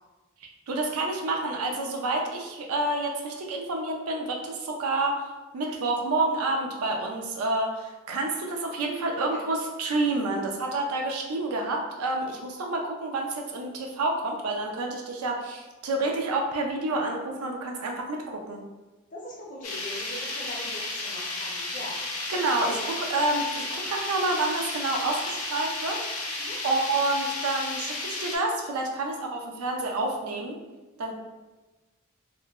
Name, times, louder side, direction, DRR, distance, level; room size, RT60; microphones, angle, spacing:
voice 1, 0.7-5.2 5.5-18.6 22.3-26.0 26.6-30.5 31.0-31.1, right 2 dB, 80° right, 1 dB, 0.4 m, -28 dB
voice 2, 9.1-9.4 19.1-22.0 26.4-26.6, left 1 dB, 35° left, -3 dB, 0.5 m, -41 dB
sound 1, 19.6-28.4, left 2 dB, 85° left, 0.6 m, -33 dB
3.0 x 2.0 x 2.3 m, 1.1 s
head